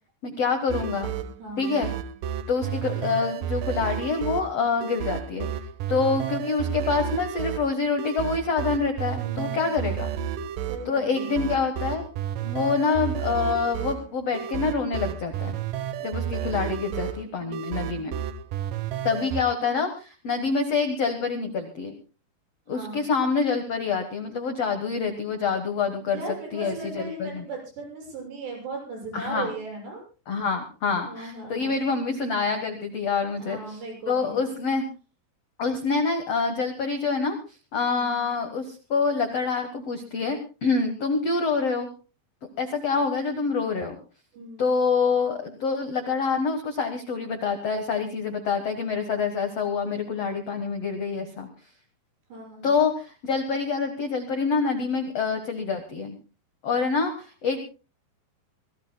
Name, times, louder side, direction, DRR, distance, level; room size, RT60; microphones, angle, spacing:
voice 1, 0.2-1.1 1.6-1.9 2.5-5.5 5.9-10.1 10.8-12.0 12.4-15.5 16.0-18.1 19.0-21.9 22.7-26.2 26.5-27.4 29.1-29.5 30.3-34.9 35.6-41.9 42.6-43.9 44.6-51.5 52.6-56.2 56.6-57.6, left 4 dB, 75° left, 6 dB, 1.4 m, -26 dB
sound 1, 0.7-19.4, right 9 dB, 85° right, 1.9 m, -32 dB
voice 2, 1.2-1.8 9.2-9.8 10.7-11.4 17.4-17.5 17.8-18.1 22.7-23.0 26.1-30.0 31.0-31.8 33.4-34.4 37.8-38.3 44.3-44.6 52.3-52.7, right 2 dB, 70° right, 0 dB, 9.1 m, -38 dB
25.0 x 17.5 x 2.2 m, 0.34 s
omnidirectional pair, 5.2 m